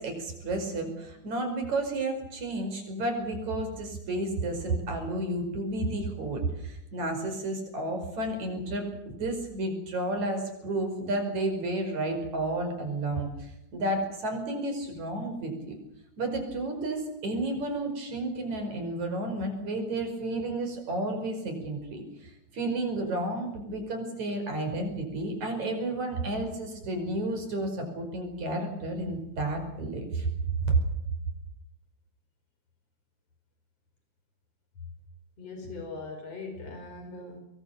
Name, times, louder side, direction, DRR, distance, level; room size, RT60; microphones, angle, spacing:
voice 1, 0.0-15.8 16.2-30.8, right 2 dB, 70° right, 5 dB, 6.6 m, -31 dB
voice 2, 35.4-37.4, left 3 dB, 55° left, 5 dB, 6.1 m, -40 dB
24.0 x 23.0 x 7.3 m, 0.84 s
omnidirectional pair, 3.4 m